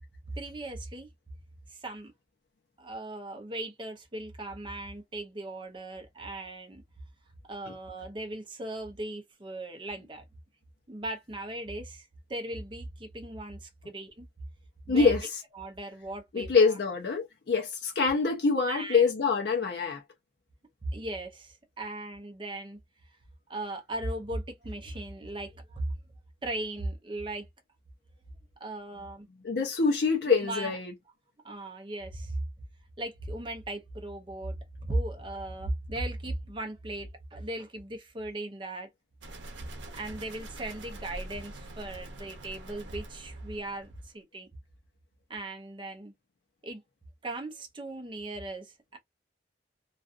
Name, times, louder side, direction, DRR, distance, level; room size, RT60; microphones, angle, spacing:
voice 1, 0.4-1.1 1.7-2.1 2.8-6.8 7.5-10.2 10.9-14.3 14.9-15.1 15.6-16.8 18.7-19.0 20.9-22.8 23.5-25.8 26.4-27.5 28.6-29.3 30.3-30.8 31.4-32.4 33.0-38.9 40.0-44.5 45.3-46.1 46.6-46.8 47.2-49.0, right 1 dB, 25° right, 0.6 m, -37 dB
voice 2, 14.9-15.4 16.3-20.0 29.4-30.9, left 5 dB, 65° left, 0.6 m, -25 dB
sound 1, 39.2-44.1, right 1 dB, 85° right, 0.7 m, -44 dB
2.4 x 2.3 x 2.4 m
head